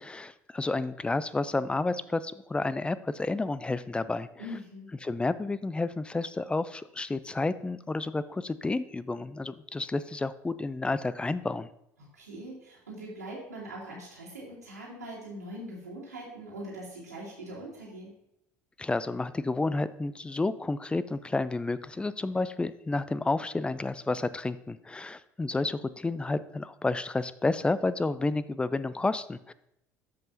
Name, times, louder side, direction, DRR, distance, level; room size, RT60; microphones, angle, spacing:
voice 1, 0.0-4.3 5.0-11.7 18.8-29.5, left 3 dB, 10° left, 16 dB, 0.4 m, -30 dB
voice 2, 4.4-4.9 12.1-18.1, right 1 dB, 85° right, -6 dB, 2.6 m, -42 dB
13.0 x 5.4 x 2.7 m, 0.81 s
figure-of-eight pair, 60°, 9 cm